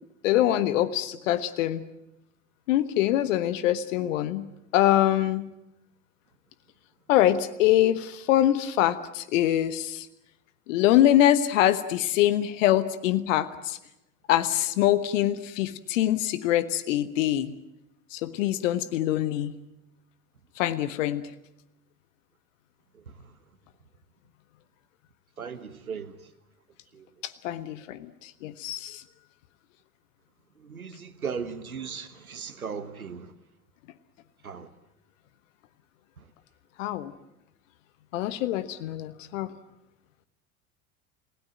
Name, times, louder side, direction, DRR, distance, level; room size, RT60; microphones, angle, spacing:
voice 1, 0.2-1.8 2.7-4.5 4.7-5.5 7.1-10.1 10.7-13.8 14.3-17.5 18.1-19.5 20.6-21.3 27.2-29.0 36.8-37.1 38.1-39.5, left 13 dB, 60° left, 1.2 m, -24 dB
voice 2, 25.4-26.1 26.9-27.1 30.6-33.3 34.4-34.7, right 6 dB, 85° right, 1.4 m, -37 dB
29.0 x 17.0 x 9.0 m
figure-of-eight pair, 75°, 42 cm